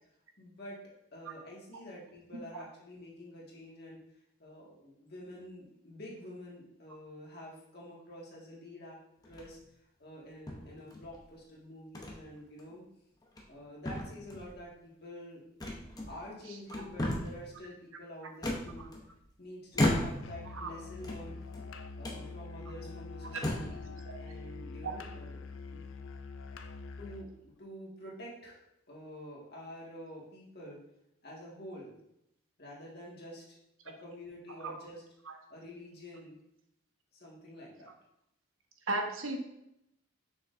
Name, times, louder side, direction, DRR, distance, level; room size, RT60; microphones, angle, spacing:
voice 1, 0.4-0.8 1.1-4.0 4.4-9.0 9.2-9.6 10.0-12.8 13.5-15.4 16.1-18.9 19.4-21.4 21.9-25.8 27.0-28.6 28.9-30.8 31.2-32.0 32.6-33.6 33.8-35.0 35.5-36.4 37.1-37.9, equal, 50° left, -4 dB, 1.8 m, -48 dB
sound 1, 9.2-9.7 10.5-11.2 11.9-12.2 12.6-12.7 13.2-13.6 13.8-14.6 15.6-16.3 16.7-17.4 18.4-19.2 19.7-20.4 20.9-21.6 22.0-22.2 22.8-22.9 23.3-23.8, left 1 dB, 20° left, 0.8 m, -34 dB
Musical instrument, 20.2-27.3, left 4 dB, 70° left, 0.5 m, -45 dB
voice 2, 38.9-39.4, right 2 dB, 70° right, 3 dB, 1.0 m, -34 dB
6.5 x 5.9 x 2.6 m, 0.80 s
head